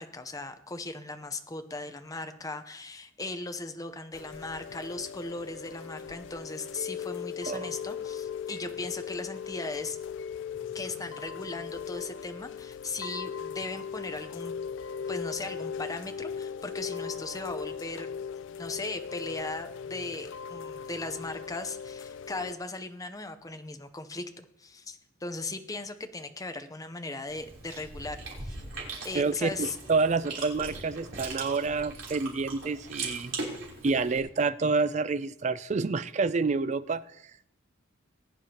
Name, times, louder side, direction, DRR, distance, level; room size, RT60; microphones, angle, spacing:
voice 1, 0.0-10.0 10.7-14.5 15.1-18.1 18.5-28.6 29.0-29.8, left 2 dB, 20° left, 8 dB, 0.7 m, -38 dB
Chime / Rain, 4.1-22.5, left 7 dB, 70° left, 0.3 m, -38 dB
Chewing mastication, 27.3-34.2, right 3 dB, 75° right, 3.4 m, -40 dB
voice 2, 29.1-33.3 33.8-37.0, right 4 dB, 35° right, 15 dB, 0.3 m, -28 dB
19.5 x 9.4 x 2.9 m, 0.79 s
head